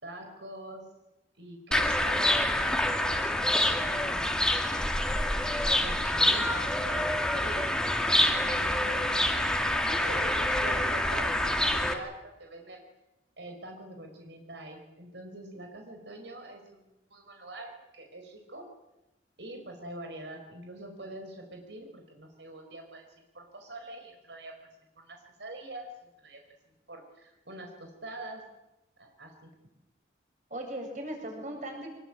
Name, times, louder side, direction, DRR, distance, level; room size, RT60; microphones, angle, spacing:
voice 1, 0.0-0.9 1.4-4.9 5.8-12.8 13.4-18.7 19.4-24.6 24.9-26.4 26.9-28.4 29.0-29.5, right 1 dB, 75° right, 3 dB, 5.0 m, -45 dB
sound 1, 1.7-11.9, left 1 dB, 5° left, 2.2 m, -27 dB
voice 2, 9.9-10.3 30.5-31.9, right 1 dB, 40° right, 3 dB, 7.5 m, -38 dB
25.5 x 22.5 x 9.0 m, 0.96 s
head